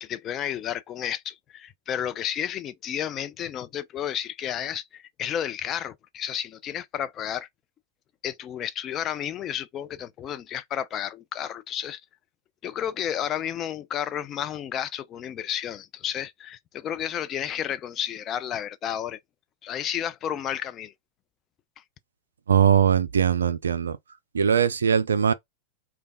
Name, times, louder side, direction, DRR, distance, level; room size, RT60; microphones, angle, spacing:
voice 1, 0.0-7.5 8.2-12.0 12.6-19.2 19.6-20.9, left 10 dB, 30° left, 0.4 m, -32 dB
voice 2, 22.5-24.0 24.3-25.3, right 7 dB, 70° right, 0.3 m, -21 dB
3.3 x 2.3 x 3.8 m
figure-of-eight pair, 90°, 0 cm